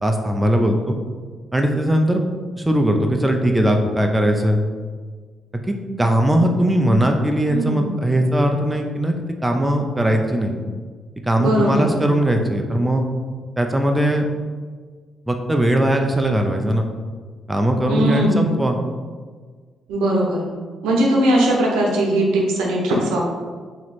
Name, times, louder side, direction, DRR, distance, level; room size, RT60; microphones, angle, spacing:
voice 1, 0.0-0.9 1.5-2.2 2.6-4.6 5.5-9.2 9.4-10.6 11.2-13.0 13.6-14.3 15.3-16.9 17.5-18.8, right 1 dB, 15° right, 3 dB, 0.5 m, -19 dB
voice 2, 7.5-7.9 11.4-11.9 17.9-18.6 19.9-20.5 20.8-23.2, right 1 dB, 90° right, -2 dB, 0.8 m, -19 dB
3.0 x 2.9 x 4.1 m, 1.5 s
supercardioid pair, 60°, 0 cm